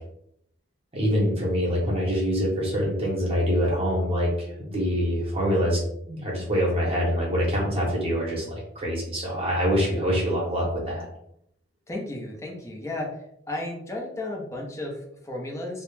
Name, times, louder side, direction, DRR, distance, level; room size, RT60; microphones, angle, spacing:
voice 1, 0.9-5.8 6.1-8.4 8.7-11.1, equal, 30° right, -4 dB, 0.8 m, -25 dB
voice 2, 11.9-13.2 13.5-15.8, left 2 dB, 15° left, -1 dB, 0.5 m, -33 dB
2.3 x 2.1 x 3.0 m, 0.74 s
head